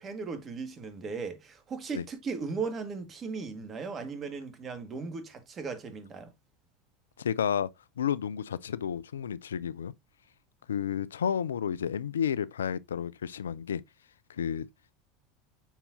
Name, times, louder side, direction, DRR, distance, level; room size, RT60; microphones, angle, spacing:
voice 1, 0.0-6.3, right 4 dB, 30° right, 1.7 m, -37 dB
voice 2, 7.2-7.7 8.0-9.9 10.7-13.8 14.3-14.7, left 8 dB, 80° left, 0.3 m, -31 dB
7.3 x 5.5 x 2.6 m
figure-of-eight pair, 80°, 0 cm